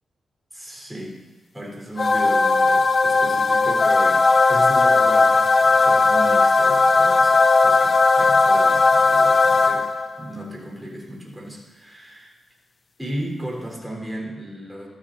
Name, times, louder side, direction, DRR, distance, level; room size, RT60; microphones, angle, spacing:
voice 1, 0.5-1.2 1.5-9.8 10.2-12.3 13.0-14.9, right 1 dB, 5° right, -2 dB, 3.8 m, -35 dB
sound 1, 2.0-10.2, left 3 dB, 40° left, 0.5 m, -17 dB
14.5 x 13.5 x 2.6 m, 1.3 s
cardioid pair, 80°, 0 cm